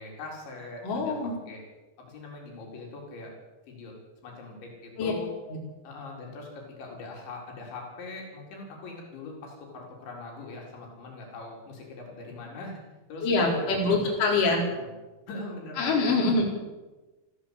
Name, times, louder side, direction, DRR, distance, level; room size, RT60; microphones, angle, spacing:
voice 1, 0.0-1.2 1.5-1.6 2.0-3.3 3.7-3.9 4.2-5.3 5.8-12.8 13.1-14.1 14.8-14.9 15.3-16.4, left 3 dB, 70° left, -1 dB, 6.4 m, -41 dB
voice 2, 0.8-1.4 5.0-5.1 5.5-5.6 13.2-14.6 15.8-16.4, left 3 dB, 45° left, -2 dB, 5.7 m, -24 dB
23.0 x 14.5 x 8.4 m, 1.1 s
omnidirectional pair, 5.5 m